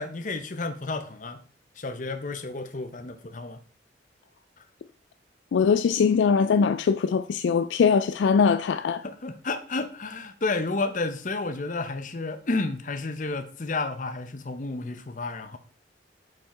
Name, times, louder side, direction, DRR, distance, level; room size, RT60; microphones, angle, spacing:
voice 1, 0.0-1.4 1.8-3.6 9.0-15.6, left 3 dB, 40° left, 0.7 m, -31 dB
voice 2, 5.5-9.0, left 6 dB, 70° left, 0.3 m, -21 dB
5.8 x 5.3 x 4.1 m
head